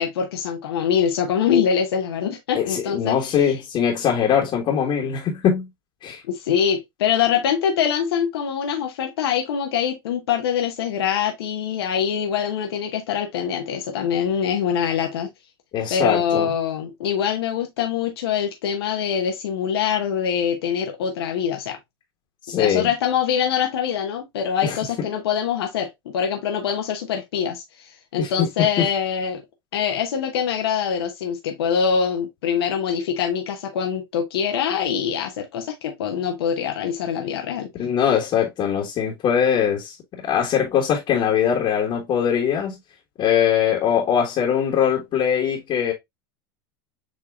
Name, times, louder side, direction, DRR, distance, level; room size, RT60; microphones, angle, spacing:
voice 1, 0.0-3.6 6.3-15.3 15.9-21.8 22.6-29.4 29.7-37.7, left 8 dB, 75° left, 0.9 m, -24 dB
voice 2, 2.5-5.7 6.0-6.2 15.7-16.5 22.5-22.9 24.6-24.8 28.2-28.3 37.8-40.0 40.2-42.8 43.2-45.9, left 8 dB, 40° left, 1.4 m, -21 dB
7.1 x 2.8 x 2.4 m
hypercardioid pair, 100°, 13 cm